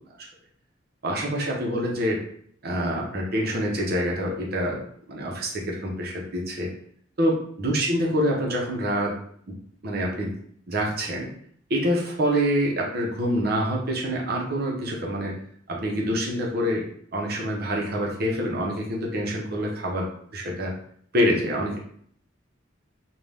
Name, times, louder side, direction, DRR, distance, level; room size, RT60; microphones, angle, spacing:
voice 1, 1.0-2.2 2.6-4.8 5.1-6.7 7.2-9.2 9.5-9.6 9.8-10.3 10.7-11.3 11.7-15.4 15.7-16.9 17.1-20.1 20.3-20.7 21.1-21.8, equal, 55° right, -1 dB, 0.7 m, -26 dB
2.7 x 2.2 x 3.3 m, 0.62 s
head